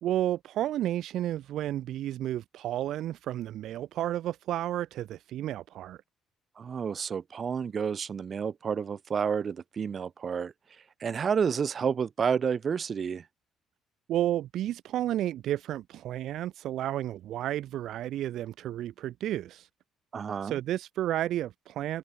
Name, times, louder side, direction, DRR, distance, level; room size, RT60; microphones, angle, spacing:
voice 1, 0.0-6.0 14.1-19.7 20.4-22.0, right 13 dB, 65° right, 1.9 m, -32 dB
voice 2, 6.6-10.5 11.0-13.2 20.1-20.6, right 6 dB, 45° right, 2.3 m, -30 dB
hypercardioid pair, 50°, 0 cm